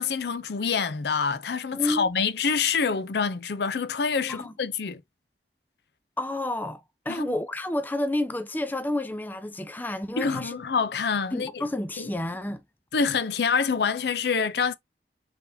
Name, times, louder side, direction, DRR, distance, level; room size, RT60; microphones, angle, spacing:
voice 1, 0.0-5.0 7.1-7.3 10.2-11.6 12.0-12.1 12.9-14.7, left 5 dB, 70° left, 0.5 m, -26 dB
voice 2, 1.7-2.1 4.3-4.5 6.2-6.8 7.1-10.6 11.3-12.6, left 1 dB, 10° left, 0.4 m, -30 dB
4.5 x 3.5 x 2.6 m
head